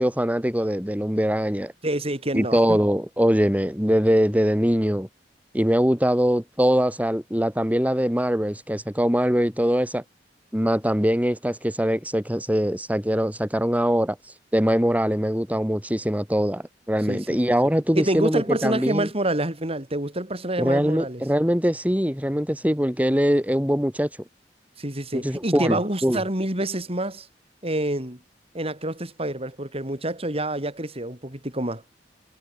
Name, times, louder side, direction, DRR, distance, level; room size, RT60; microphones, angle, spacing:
voice 1, 0.0-1.7 2.3-5.1 5.5-10.0 10.5-14.2 14.5-19.1 20.6-24.1 25.1-26.2, equal, 10° right, 7.2 m, -22 dB
voice 2, 1.8-2.8 17.1-17.4 17.9-21.2 24.8-27.3 27.6-28.2 28.5-31.8, right 1 dB, 35° right, 7.1 m, -27 dB
head